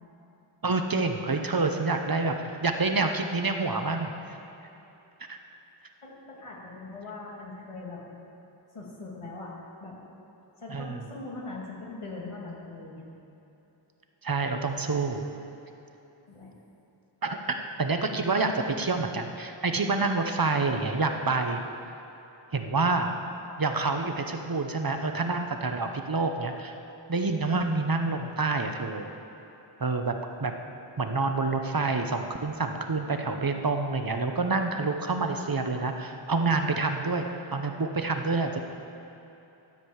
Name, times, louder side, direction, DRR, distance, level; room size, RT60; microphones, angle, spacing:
voice 1, 0.6-4.1 5.3-5.4 10.7-11.0 14.2-15.2 17.2-21.6 22.5-23.1 23.6-26.8 27.1-29.1 29.8-30.5 31.0-37.2 37.5-38.6, right 3 dB, 45° right, 5 dB, 0.9 m, -27 dB
voice 2, 6.0-8.0 8.7-9.5 9.8-10.0 10.6-13.0 16.3-16.5, left 3 dB, 85° left, -4 dB, 2.3 m, -41 dB
13.5 x 5.1 x 8.0 m, 3.0 s
wide cardioid pair, 55°, 50 cm